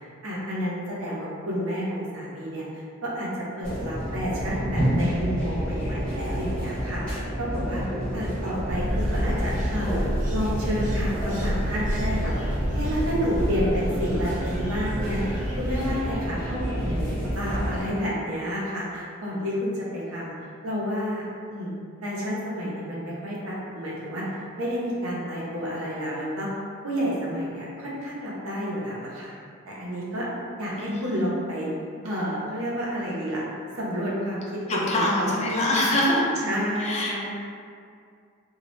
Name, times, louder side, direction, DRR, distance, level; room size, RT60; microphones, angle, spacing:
voice 1, 0.2-3.3 3.6-7.8 8.1-10.0 10.3-20.3 20.6-21.7 22.0-26.5 26.8-29.4 29.7-30.3 30.6-31.7 32.0-33.4 33.8-35.6 36.4-37.3, equal, 90° right, -6 dB, 0.6 m, -30 dB
sound 1, 3.6-17.8, equal, 5° left, 0.7 m, -29 dB
sound 2, 8.7-16.0, equal, 35° right, 0.4 m, -29 dB
voice 2, 30.8-31.3 34.7-36.2 36.8-37.1, left 1 dB, 30° left, -3 dB, 0.4 m, -24 dB
2.2 x 2.0 x 3.0 m, 2.3 s
head